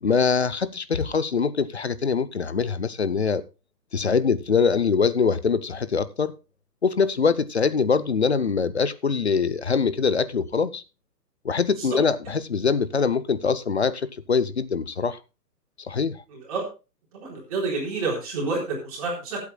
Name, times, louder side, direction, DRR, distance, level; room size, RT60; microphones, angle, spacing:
voice 1, 0.0-3.4 3.9-6.3 6.8-10.8 11.4-15.2 15.8-16.2, left 5 dB, 40° left, 0.6 m, -23 dB
voice 2, 17.1-19.4, right 3 dB, 20° right, 3.9 m, -28 dB
22.0 x 8.4 x 2.3 m
hypercardioid pair, 175°, 49 cm